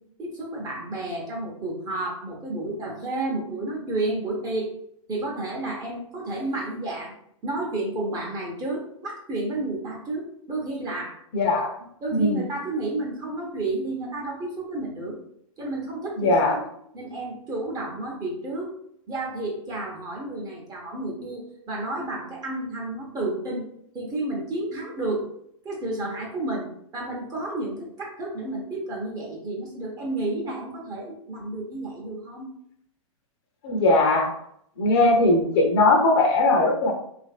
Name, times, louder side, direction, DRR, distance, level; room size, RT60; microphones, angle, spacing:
voice 1, 0.0-4.7 5.1-7.2 7.4-11.2 12.0-15.2 15.6-16.7 16.9-18.7 19.1-23.7 23.9-25.3 25.6-26.7 26.9-32.5, right 2 dB, 20° right, -2 dB, 0.7 m, -31 dB
voice 2, 11.3-11.7 12.1-12.4 16.2-16.6 33.6-34.3 34.8-36.9, left 2 dB, 50° left, 3 dB, 0.6 m, -19 dB
2.8 x 2.5 x 2.3 m, 0.71 s
hypercardioid pair, 130°, 18 cm